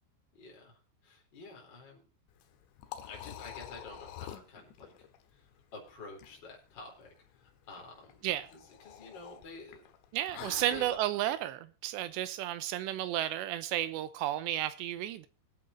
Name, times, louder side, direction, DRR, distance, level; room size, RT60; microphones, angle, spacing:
voice 1, 0.3-2.0 3.0-4.9 5.3-8.2 8.5-9.8 10.6-10.8, left 3 dB, 25° left, 4.2 m, -50 dB
Liquid, 2.3-11.0, left 11 dB, 85° left, 3.5 m, -48 dB
voice 2, 10.1-15.3, right 13 dB, 85° right, 3.0 m, -33 dB
23.0 x 8.8 x 2.8 m
omnidirectional pair, 5.1 m